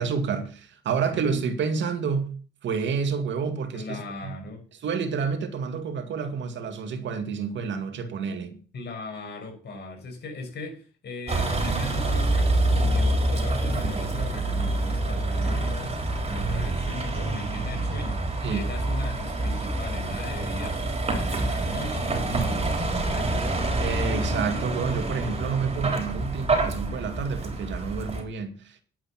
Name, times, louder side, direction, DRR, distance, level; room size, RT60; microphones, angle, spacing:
voice 1, 0.0-2.3 2.6-4.4 4.8-8.6 18.4-18.6 23.8-28.8, right 5 dB, 65° right, 2.1 m, -29 dB
voice 2, 3.7-4.6 8.7-23.7, left 2 dB, 55° left, 6.3 m, -38 dB
Vehicle, 11.3-28.2, right 2 dB, 30° right, 3.8 m, -27 dB
10.5 x 8.6 x 6.0 m
cardioid pair, 90°, 20 cm